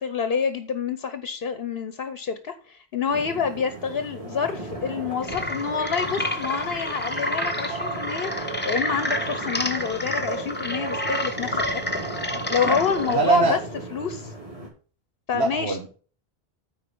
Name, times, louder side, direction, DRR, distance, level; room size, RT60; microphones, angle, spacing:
voice 1, 0.0-11.8 12.5-13.6 13.9-14.3 15.3-15.8, left 6 dB, 65° left, 10 dB, 1.0 m, -27 dB
sound 1, 3.1-14.7, right 3 dB, 35° right, 3.0 m, -37 dB
sound 2, 5.2-13.1, left 1 dB, 10° left, 1.1 m, -29 dB
voice 2, 13.1-13.6 15.3-15.9, right 4 dB, 75° right, 1 dB, 1.7 m, -22 dB
9.3 x 4.4 x 6.9 m, 0.39 s
omnidirectional pair, 1.1 m